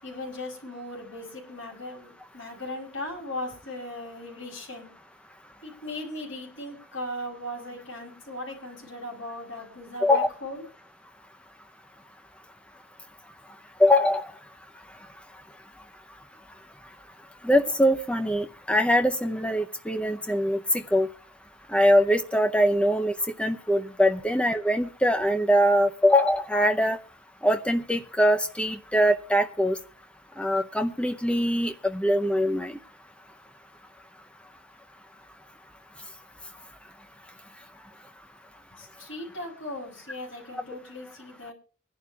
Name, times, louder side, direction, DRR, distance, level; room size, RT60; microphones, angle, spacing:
voice 1, 0.0-4.9 5.6-10.6 38.7-41.5, left 1 dB, 70° left, -2 dB, 6.1 m, -38 dB
voice 2, 13.8-14.2 17.4-21.1 21.7-23.1 23.4-27.0 27.4-29.7 30.4-32.8, equal, 5° left, 7 dB, 0.6 m, -22 dB
24.5 x 11.5 x 2.4 m, 0.38 s
head